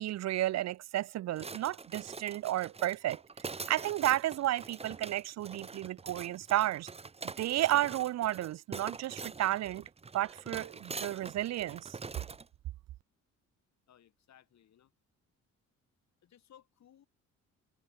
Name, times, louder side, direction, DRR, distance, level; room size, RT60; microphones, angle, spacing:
voice 1, 0.0-3.2 3.7-6.9 7.4-9.8 10.1-12.0, right 14 dB, 60° right, 0.5 m, -32 dB
sound 1, 1.4-12.5, right 4 dB, 20° right, 0.8 m, -44 dB
voice 2, 13.9-14.9 16.2-17.1, left 10 dB, 65° left, 3.4 m, -61 dB
cardioid pair, 90°, 30 cm